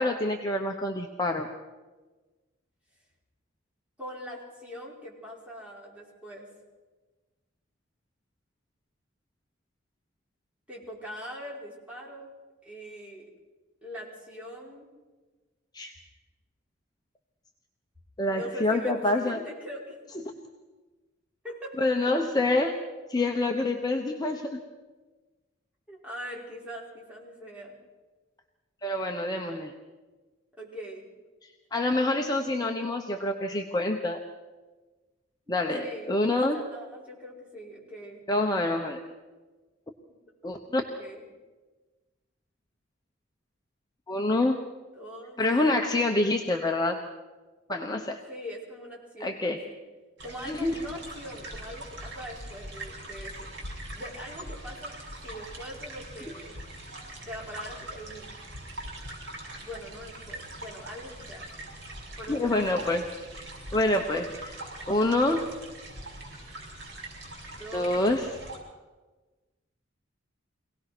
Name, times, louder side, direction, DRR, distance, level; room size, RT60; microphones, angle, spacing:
voice 1, 0.0-1.5 15.7-15.9 18.2-19.4 21.8-22.7 23.1-24.6 28.8-29.7 31.7-34.2 35.5-36.6 38.3-39.0 40.4-40.8 44.1-44.7 45.4-47.0 47.7-48.2 49.2-49.6 50.5-50.8 62.3-63.0 63.7-64.6 64.9-65.6 67.7-68.3, left 2 dB, 20° left, 2 dB, 1.0 m, -26 dB
voice 2, 4.0-6.5 10.7-12.3 12.6-13.3 13.8-14.9 18.3-20.0 21.4-21.8 25.9-27.8 30.6-31.1 35.8-38.3 40.1-40.2 41.0-41.3 44.9-45.4 48.3-49.8 50.2-53.5 53.9-54.9 55.2-56.6 57.2-58.4 59.6-61.5 62.2-63.1 67.5-68.0, equal, 5° right, -4 dB, 5.2 m, -42 dB
sound 1, 50.2-68.6, right 1 dB, 65° right, 6.0 m, -42 dB
24.0 x 18.0 x 6.1 m, 1.3 s
head